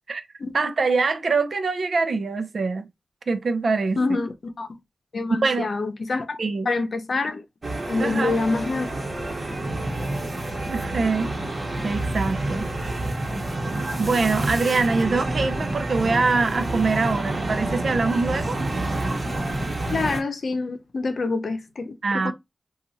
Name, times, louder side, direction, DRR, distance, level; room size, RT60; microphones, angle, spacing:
voice 1, 0.5-2.9 3.3-4.2 5.4-5.7 6.4-6.7 8.0-8.4 10.7-11.3 11.8-12.7 14.0-18.5 22.0-22.3, right 4 dB, 70° right, 0.5 m, -24 dB
voice 2, 4.0-4.7 5.1-6.4 6.7-7.4 7.9-8.9 19.9-22.3, left 3 dB, 65° left, 0.7 m, -26 dB
sound 1, 7.6-20.2, right 2 dB, 50° right, 1.0 m, -28 dB
2.7 x 2.4 x 4.1 m
cardioid pair, 55°, 0 cm